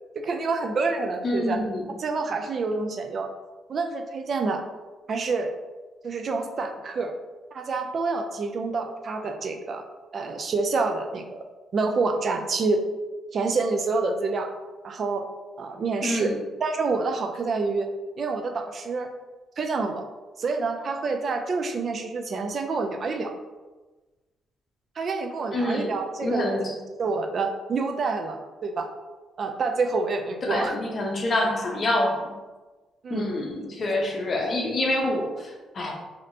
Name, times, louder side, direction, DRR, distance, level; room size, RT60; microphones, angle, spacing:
voice 1, 0.2-1.6 2.0-3.3 3.7-4.6 5.1-5.5 6.0-7.1 7.5-9.8 10.1-11.4 11.7-12.8 13.3-14.5 14.8-15.2 15.6-16.3 16.6-17.9 18.2-19.1 19.6-20.0 20.4-23.3 25.0-26.7 27.0-28.9 29.4-30.7 33.0-33.3, right 4 dB, 50° right, 5 dB, 0.4 m, -27 dB
voice 2, 1.2-1.9 16.0-16.4 25.5-26.0 26.2-26.7 30.5-32.1 33.1-35.9, left 1 dB, 45° left, 0 dB, 0.7 m, -26 dB
3.2 x 2.7 x 2.7 m, 1.2 s
cardioid pair, 90°, 0 cm